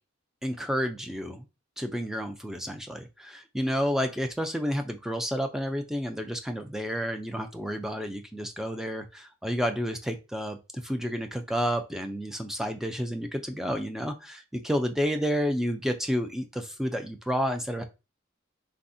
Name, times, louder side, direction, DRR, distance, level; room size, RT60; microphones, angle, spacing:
voice 1, 0.4-1.5 1.8-17.8, equal, ahead, 6 dB, 0.3 m, -30 dB
3.4 x 2.1 x 2.6 m, 0.28 s
head